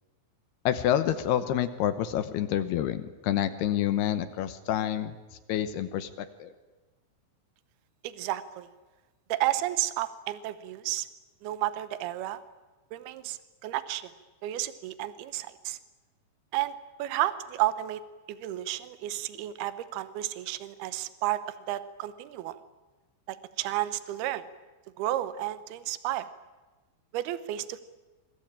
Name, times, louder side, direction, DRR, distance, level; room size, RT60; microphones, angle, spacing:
voice 1, 0.7-5.1 5.5-6.1 6.4-6.5, left 11 dB, 75° left, 11 dB, 2.5 m, -28 dB
voice 2, 8.0-8.7 9.3-11.1 11.4-12.4 12.9-14.1 14.4-15.8 16.5-16.7 17.0-18.0 18.3-22.6 23.3-24.4 25.0-26.3 27.1-27.8, right 14 dB, 85° right, 13 dB, 2.2 m, -32 dB
27.0 x 22.5 x 8.8 m, 1.2 s
omnidirectional pair, 5.9 m